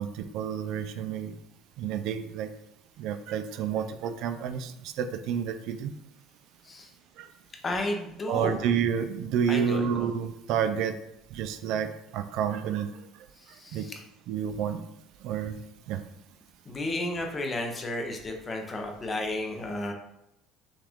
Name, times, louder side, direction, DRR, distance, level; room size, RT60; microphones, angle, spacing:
voice 1, 0.0-1.4 1.8-2.5 3.0-5.9 7.2-7.3 8.3-10.9 11.3-12.9 13.7-13.8 14.3-14.8 15.2-15.6 15.9-16.0, right 8 dB, 55° right, 9 dB, 0.3 m, -29 dB
voice 2, 7.6-8.6 9.5-10.1 13.4-14.0 16.7-19.9, left 1 dB, 20° left, 3 dB, 0.6 m, -33 dB
6.1 x 2.4 x 3.5 m, 0.82 s
cardioid pair, 170°, 0 cm